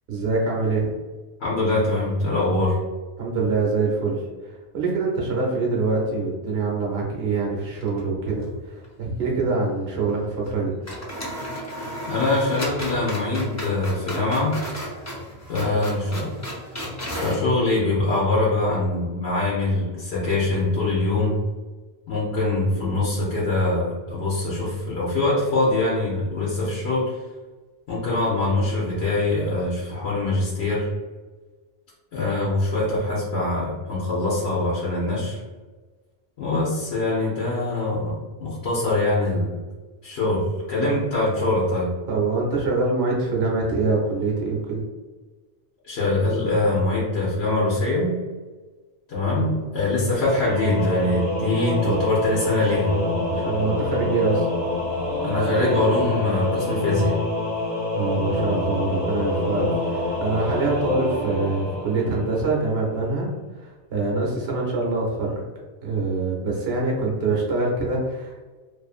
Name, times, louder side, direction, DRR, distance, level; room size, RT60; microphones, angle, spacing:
voice 1, 0.1-0.9 3.2-10.7 15.6-15.7 16.1-16.2 40.8-41.0 42.1-44.8 49.4-49.5 51.8-52.0 53.3-54.5 57.9-63.3 63.6-65.4 65.8-68.4, right 3 dB, 80° right, -3 dB, 0.9 m, -25 dB
voice 2, 1.4-2.8 12.1-14.6 15.5-16.3 17.2-21.3 22.1-27.0 27.9-30.9 32.1-35.4 36.4-38.1 38.4-39.6 40.0-41.9 45.8-48.1 49.1-52.9 55.2-57.1, left 2 dB, 80° left, -6 dB, 1.0 m, -23 dB
sound 1, 7.7-8.6 8.8-8.9 10.4-10.6 10.8-17.5, equal, 25° left, 0.3 m, -33 dB
Singing / Musical instrument, 50.2-62.6, left 1 dB, 10° right, 1.3 m, -26 dB
2.5 x 2.4 x 2.4 m, 1.3 s
omnidirectional pair, 1.1 m